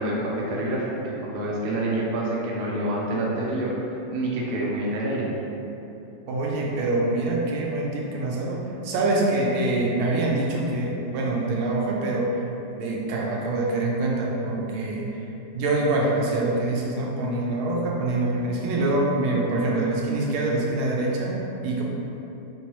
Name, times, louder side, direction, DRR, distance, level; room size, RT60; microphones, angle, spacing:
voice 1, 0.0-3.8 4.1-5.3, right 1 dB, 70° right, -4 dB, 1.0 m, -27 dB
voice 2, 6.3-12.3 12.8-15.1 15.5-21.8, right 2 dB, 85° right, -3 dB, 1.4 m, -25 dB
3.5 x 3.1 x 3.0 m, 2.9 s
omnidirectional pair, 2.2 m